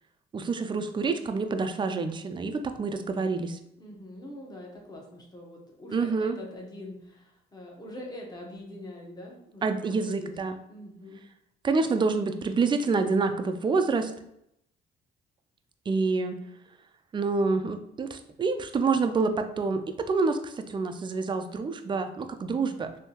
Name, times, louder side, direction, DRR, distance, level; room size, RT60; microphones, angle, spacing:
voice 1, 0.3-3.6 5.9-6.4 9.6-10.6 11.6-14.1 15.9-16.4 17.1-22.9, right 4 dB, 25° right, 8 dB, 0.3 m, -27 dB
voice 2, 3.8-10.3 10.7-11.2, left 1 dB, 20° left, -1 dB, 1.0 m, -43 dB
3.5 x 2.7 x 2.8 m, 0.77 s
cardioid pair, 90°, 20 cm